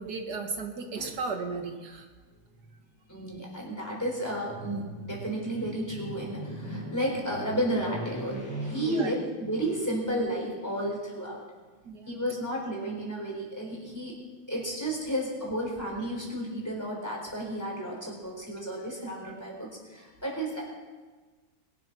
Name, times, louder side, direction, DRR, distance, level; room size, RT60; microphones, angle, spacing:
voice 1, 0.0-2.1 8.8-9.1 11.9-12.2 19.0-19.3, right 4 dB, 70° right, 5 dB, 2.0 m, -35 dB
voice 2, 3.1-9.1 9.4-11.5 12.1-14.2 14.5-20.6, right 1 dB, 10° left, -3 dB, 4.1 m, -32 dB
22.0 x 7.8 x 6.1 m, 1.4 s
omnidirectional pair, 1.8 m